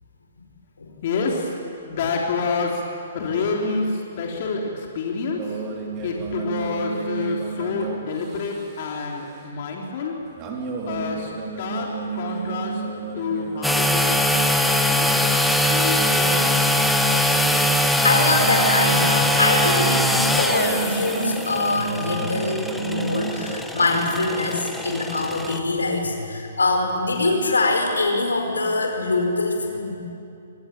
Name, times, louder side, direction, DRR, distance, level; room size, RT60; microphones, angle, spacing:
voice 1, 1.0-1.5 1.8-2.8 3.1-4.6 4.9-5.4 6.0-10.1 10.8-11.3 11.6-11.9 12.2-12.7 13.1-14.2 14.9-15.3 15.7-16.7, left 4 dB, 50° left, -1 dB, 3.6 m, -27 dB
sound 1, 5.4-8.9 10.4-23.6, right 5 dB, 30° right, 3.8 m, -32 dB
sound 2, 13.6-25.6, left 1 dB, ahead, 1.4 m, -22 dB
voice 2, 18.0-29.9, left 2 dB, 85° left, 3 dB, 4.9 m, -23 dB
25.5 x 19.0 x 9.2 m, 2.6 s
hypercardioid pair, 130°, 0 cm